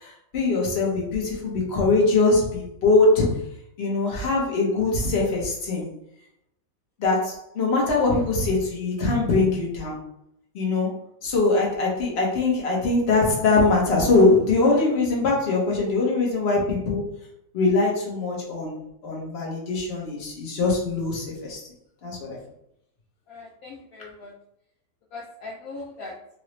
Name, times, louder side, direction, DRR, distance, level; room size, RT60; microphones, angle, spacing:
voice 1, 0.0-3.4 3.8-5.9 7.0-10.0 10.5-10.9 11.2-17.0 17.5-21.6 22.0-22.4, left 3 dB, 45° left, -2 dB, 1.0 m, -22 dB
voice 2, 23.3-24.3 25.1-26.2, left 3 dB, 75° left, -2 dB, 0.8 m, -39 dB
3.9 x 2.3 x 3.1 m, 0.77 s
omnidirectional pair, 2.0 m